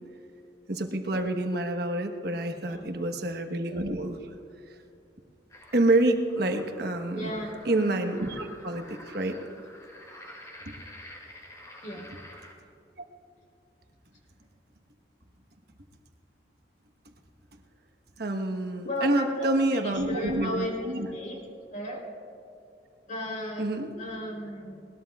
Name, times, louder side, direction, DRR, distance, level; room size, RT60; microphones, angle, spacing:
voice 1, 0.7-4.2 5.7-7.3 7.6-9.4 10.7-10.8 18.2-21.1 23.6-23.9, right 2 dB, 60° right, 5 dB, 1.2 m, -27 dB
sound 1, 5.5-12.5, left 1 dB, 20° left, 2.3 m, -49 dB
voice 2, 7.1-7.5 11.8-12.1 18.8-20.8 21.1-21.4 21.7-22.0 23.1-23.6 24.0-24.9, equal, 45° left, -3 dB, 3.7 m, -34 dB
20.5 x 20.0 x 2.4 m, 2.6 s
head